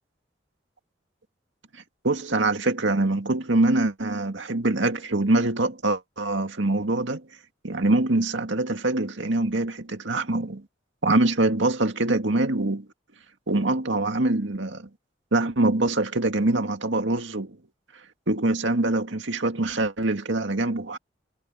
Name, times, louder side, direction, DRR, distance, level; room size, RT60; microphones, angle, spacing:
voice 1, 2.0-7.2 7.6-10.6 11.0-12.9 13.5-14.9 15.3-17.6 18.3-21.0, right 2 dB, 90° right, 2.1 m, -24 dB
head